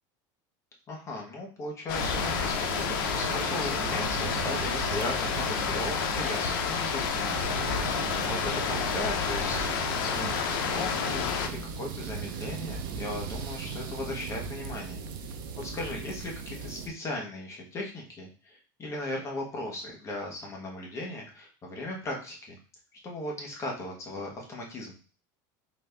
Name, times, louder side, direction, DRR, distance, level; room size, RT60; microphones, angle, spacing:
voice 1, 0.9-7.6 7.9-15.0 15.6-22.6 23.0-25.0, left 2 dB, 25° left, -1 dB, 1.2 m, -37 dB
sound 1, 1.9-11.5, left 7 dB, 90° left, 0.6 m, -30 dB
sound 2, 1.9-16.9, right 5 dB, 90° right, 0.6 m, -37 dB
4.1 x 2.6 x 3.4 m, 0.37 s
supercardioid pair, 145°, 11 cm